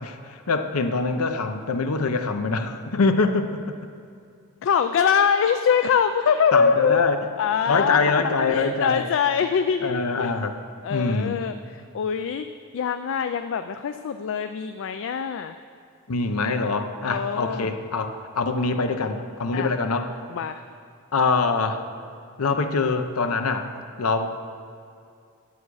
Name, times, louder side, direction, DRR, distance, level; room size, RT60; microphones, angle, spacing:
voice 1, 0.0-3.6 6.5-7.2 7.7-9.1 9.8-10.6 10.9-11.4 16.1-20.2 21.1-21.9 22.4-23.7 24.0-24.3, left 4 dB, 85° left, 7 dB, 0.7 m, -24 dB
voice 2, 4.6-8.0 8.4-10.3 10.8-12.5 12.7-15.6 17.0-17.7 19.5-19.7 20.3-20.6, left 6 dB, 60° left, 9 dB, 0.3 m, -23 dB
12.0 x 8.2 x 4.8 m, 2.4 s
head